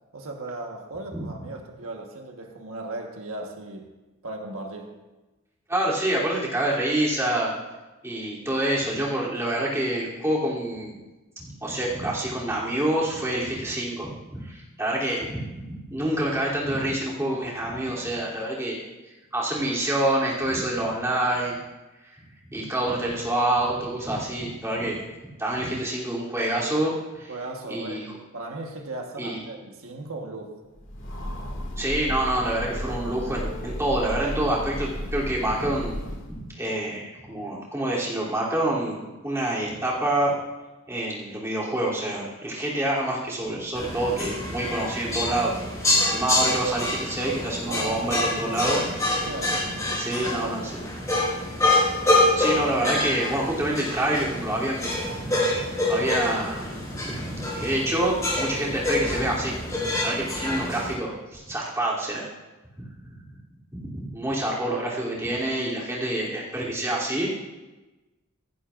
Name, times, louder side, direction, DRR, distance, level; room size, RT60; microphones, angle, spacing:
voice 1, 0.1-4.0 4.2-4.9 27.3-28.1 28.3-30.6 47.7-50.8, right 2 dB, 75° right, 2 dB, 1.4 m, -37 dB
voice 2, 5.7-7.5 8.0-10.9 11.4-18.8 19.3-21.6 22.5-25.0 25.4-27.3 27.7-28.0 29.2-29.4 31.8-36.1 36.6-40.4 40.9-45.5 45.8-48.8 49.9-50.7 51.1-51.2 52.3-55.6 55.9-56.7 57.0-62.3 63.0-63.1 63.8-67.4, right 1 dB, 10° right, -6 dB, 3.0 m, -27 dB
Train, 30.8-36.5, equal, 60° left, 2.2 m, -34 dB
sound 1, 43.7-60.9, left 1 dB, 15° left, 4.0 m, -26 dB
25.0 x 11.5 x 2.5 m, 1.1 s
head